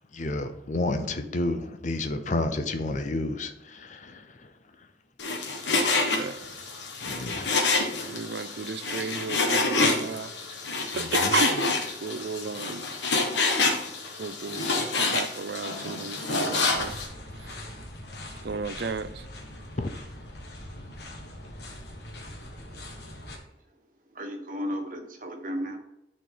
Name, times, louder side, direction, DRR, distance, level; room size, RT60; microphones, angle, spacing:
voice 1, 0.1-3.5 7.0-7.7 10.9-11.3 19.8-19.9, left 2 dB, 45° left, 0.7 m, -30 dB
Frying (food), 5.2-17.1, left 3 dB, 85° left, 1.3 m, -27 dB
voice 2, 5.7-6.4 8.1-10.3 10.9-11.7 12.0-12.8 14.2-17.0 18.4-19.2, right 5 dB, 65° right, 0.5 m, -33 dB
sound 1, 16.7-23.4, left 1 dB, 65° left, 1.5 m, -42 dB
voice 3, 24.1-25.8, equal, 50° right, 1.3 m, -34 dB
10.0 x 4.3 x 3.8 m
head